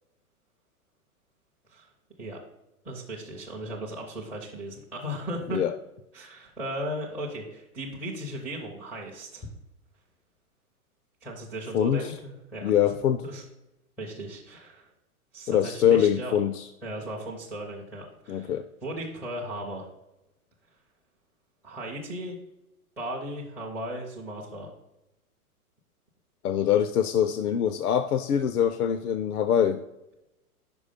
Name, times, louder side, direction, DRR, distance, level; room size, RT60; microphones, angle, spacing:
voice 1, 2.8-5.6 6.1-9.5 11.2-12.9 13.2-13.4 14.0-14.9 15.3-16.4 16.8-19.9 21.6-22.4 23.0-24.7, right 1 dB, 5° right, -5 dB, 0.5 m, -36 dB
voice 2, 12.6-13.2 15.5-16.7 18.3-18.6 26.4-29.8, left 9 dB, 75° left, 11 dB, 0.6 m, -24 dB
5.3 x 4.8 x 5.0 m, 0.91 s
hypercardioid pair, 120°, 45 cm